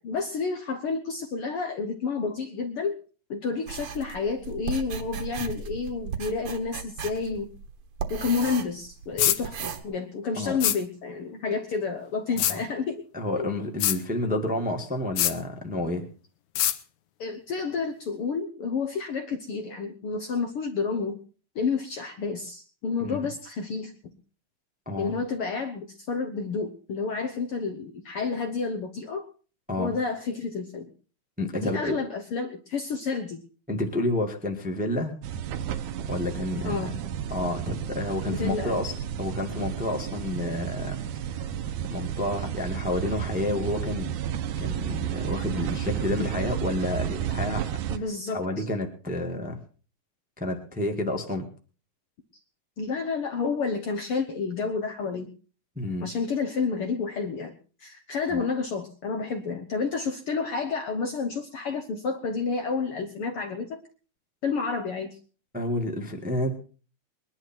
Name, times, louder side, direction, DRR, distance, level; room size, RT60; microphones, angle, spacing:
voice 1, 0.0-3.0 3.3-7.5 8.1-13.0 13.4-13.5 17.2-21.2 21.5-23.9 25.0-29.3 29.8-30.9 31.5-33.4 36.6-36.9 38.3-38.8 47.9-48.7 52.8-55.3 56.0-57.5 57.8-63.8 64.4-65.2, left 4 dB, 60° left, 4 dB, 1.6 m, -30 dB
sound 1, 3.7-9.8, right 6 dB, 55° right, 1.9 m, -36 dB
sound 2, 9.2-9.4 10.6-10.8 12.4-12.6 13.8-14.0 15.2-15.4 16.6-16.8, left 13 dB, 75° left, 2.3 m, -23 dB
voice 2, 13.1-16.1 23.0-23.3 24.8-25.1 29.7-29.9 31.4-32.0 33.7-35.1 36.1-36.9 37.3-38.9 39.2-41.0 41.9-47.7 48.3-49.6 50.4-51.5 55.7-56.1 58.3-58.4 65.5-66.6, left 1 dB, 5° right, 4 dB, 1.2 m, -30 dB
sound 3, 35.2-48.0, right 10 dB, 80° right, 2.4 m, -32 dB
21.5 x 11.0 x 4.5 m, 0.39 s
omnidirectional pair, 3.5 m